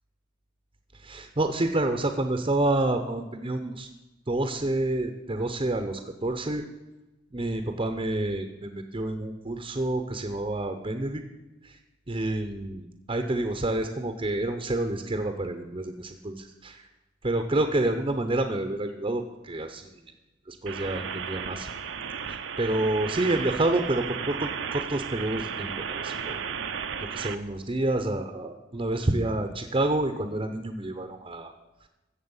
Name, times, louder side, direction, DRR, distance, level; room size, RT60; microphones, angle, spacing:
voice 1, 0.9-3.9 4.3-6.6 7.3-11.2 11.6-11.8 12.1-16.9 17.2-20.0 20.5-21.7 22.3-26.4 27.1-31.5, right 2 dB, 30° right, 5 dB, 0.7 m, -28 dB
sound 1, 20.7-27.3, right 7 dB, 70° right, 0.7 m, -34 dB
15.0 x 7.3 x 5.5 m, 1.0 s
head